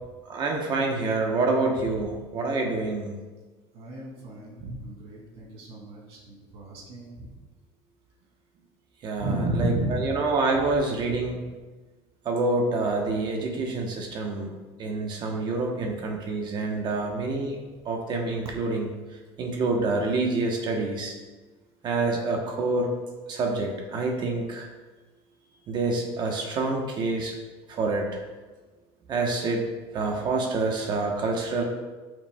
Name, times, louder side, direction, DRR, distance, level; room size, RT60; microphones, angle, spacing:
voice 1, 0.3-3.2 9.0-11.4 12.2-14.5 14.8-17.6 17.8-18.9 19.4-21.1 21.8-22.9 23.3-24.7 25.7-27.4 27.7-28.2 29.1-29.6 29.9-31.6, right 3 dB, 40° right, 1 dB, 1.0 m, -27 dB
voice 2, 3.7-7.3 9.2-10.3 10.5-10.6 11.0-11.1, right 1 dB, 60° right, -3 dB, 2.5 m, -32 dB
11.5 x 6.1 x 2.3 m, 1.3 s
cardioid pair, 160°, 12 cm